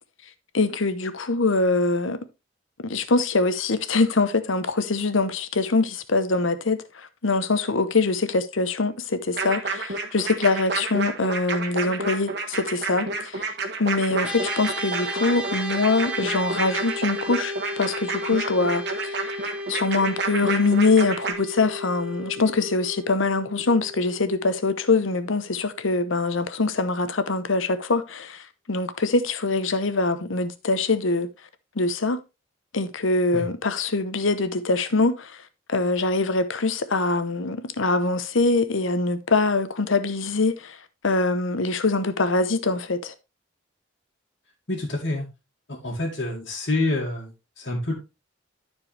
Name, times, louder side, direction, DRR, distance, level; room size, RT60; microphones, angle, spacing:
voice 1, 0.5-2.2 2.8-13.5 13.8-19.2 19.7-31.3 31.8-32.2 32.7-35.4 35.7-40.8 41.0-43.1, left 3 dB, 75° left, 0.9 m, -23 dB
sound 1, 9.4-21.3, right 3 dB, 55° right, 1.5 m, -29 dB
sound 2, 14.2-25.7, left 1 dB, 5° right, 1.2 m, -35 dB
voice 2, 44.7-45.3 45.7-47.9, left 2 dB, 55° left, 2.2 m, -27 dB
13.0 x 4.6 x 3.3 m
head